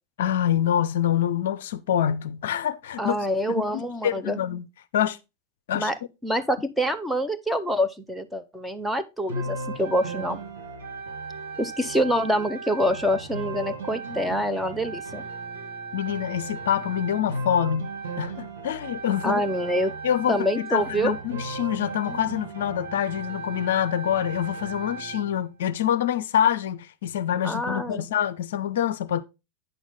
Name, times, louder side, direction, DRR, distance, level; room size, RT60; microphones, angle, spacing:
voice 1, 0.2-3.2 3.5-4.7 4.9-5.2 5.7-5.9 15.9-17.9 18.2-19.4 20.0-29.2, left 10 dB, 60° left, 0.5 m, -26 dB
voice 2, 3.0-4.4 5.7-5.9 6.2-10.4 11.6-15.3 19.2-19.9 20.3-21.1 27.4-28.1, equal, ahead, 0.7 m, -26 dB
sound 1, 9.3-25.3, right 3 dB, 65° right, 1.9 m, -36 dB
8.9 x 6.2 x 3.4 m
figure-of-eight pair, 90°, 0 cm